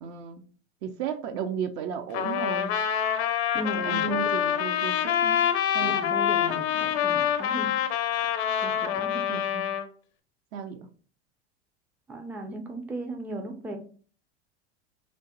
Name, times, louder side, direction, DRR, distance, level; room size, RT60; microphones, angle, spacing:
voice 1, 0.0-0.4 0.8-2.7 3.7-5.4 5.7-6.0 9.3-9.7 10.5-10.9, right 6 dB, 55° right, 0.5 m, -34 dB
Trumpet, 2.1-9.8, left 9 dB, 80° left, 0.5 m, -26 dB
voice 2, 3.5-4.6 5.8-7.7 8.6-9.2 12.1-13.8, right 1 dB, 5° right, 0.3 m, -36 dB
3.2 x 2.0 x 2.8 m
hypercardioid pair, 85°, 32 cm